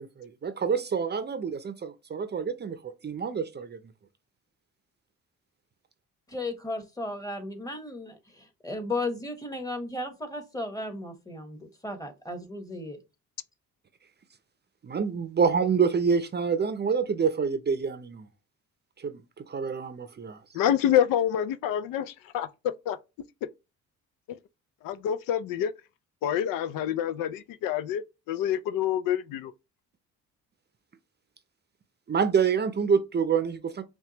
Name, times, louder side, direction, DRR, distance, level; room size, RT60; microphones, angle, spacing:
voice 1, 0.0-3.8 14.8-18.3 19.0-20.4 32.1-33.8, right 6 dB, 30° right, 0.6 m, -27 dB
voice 2, 6.3-13.0, left 2 dB, 10° left, 1.2 m, -35 dB
voice 3, 20.5-22.5 22.9-23.0 24.3-24.4 24.8-25.7 26.2-29.5, left 10 dB, 85° left, 0.5 m, -27 dB
5.7 x 2.3 x 2.9 m
cardioid pair, 85°, 32 cm